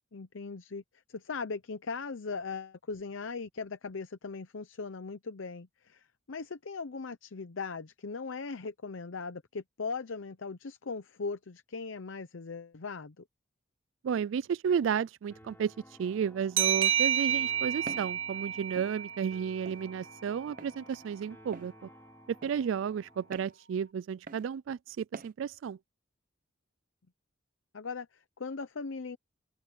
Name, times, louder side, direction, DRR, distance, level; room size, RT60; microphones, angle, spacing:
voice 1, 0.1-0.8 1.1-13.2 27.7-29.2, left 4 dB, 75° left, 0.7 m, -39 dB
voice 2, 14.0-15.7 16.0-21.7 22.3-25.8, right 7 dB, 70° right, 0.3 m, -32 dB
sound 1, 15.3-23.3, left 1 dB, 10° left, 3.9 m, -57 dB
sound 2, 16.6-19.9, right 10 dB, 85° right, 1.5 m, -30 dB
Walk footsteps, 17.9-18.1 18.8-18.9 19.7-19.8 20.6-20.8 21.5-21.7 22.4-22.6 23.3-23.5 24.3-24.5 25.1-25.3, right 3 dB, 45° right, 0.8 m, -44 dB
head